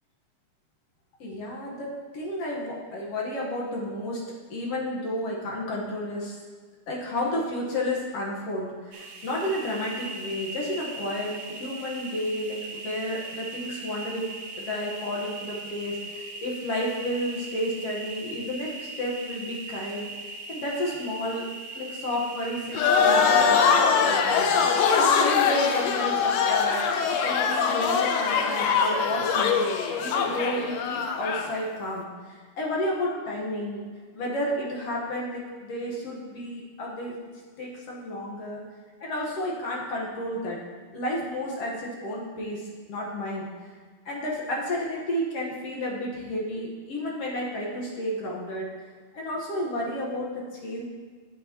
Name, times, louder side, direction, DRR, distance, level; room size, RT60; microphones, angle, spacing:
voice 1, 1.2-4.2 4.5-6.4 6.9-14.2 14.6-20.1 20.5-21.4 21.7-26.9 27.2-29.7 30.0-33.8 34.1-37.1 37.6-38.6 39.0-40.6 40.9-43.5 44.1-48.7 49.1-50.8, left 1 dB, 55° left, -4 dB, 2.2 m, -31 dB
sound 1, 8.9-23.4, right 2 dB, 65° right, 1.6 m, -39 dB
sound 2, 22.7-31.5, left 6 dB, 80° left, 1.5 m, -22 dB
11.0 x 9.4 x 3.1 m, 1.5 s
omnidirectional pair, 3.8 m